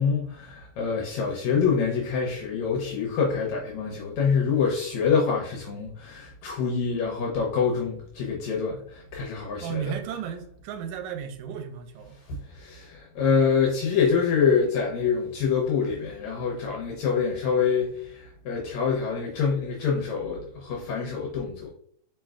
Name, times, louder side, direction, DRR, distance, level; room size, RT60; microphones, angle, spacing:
voice 1, 0.0-9.9 12.3-21.7, left 6 dB, 75° left, 2.0 m, -26 dB
voice 2, 9.6-12.2, right 8 dB, 90° right, 2.0 m, -34 dB
4.6 x 4.5 x 2.3 m
omnidirectional pair, 3.3 m